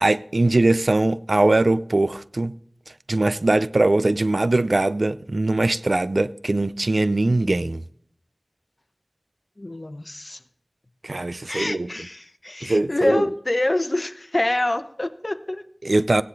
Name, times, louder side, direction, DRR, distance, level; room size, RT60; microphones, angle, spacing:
voice 1, 0.0-2.5 3.1-7.8 11.0-11.9 12.6-13.3 15.8-16.2, right 2 dB, 65° right, 0.5 m, -21 dB
voice 2, 9.6-10.4 11.5-15.6, left 1 dB, 45° left, 0.8 m, -26 dB
16.5 x 10.0 x 3.8 m
wide cardioid pair, 45°, 0 cm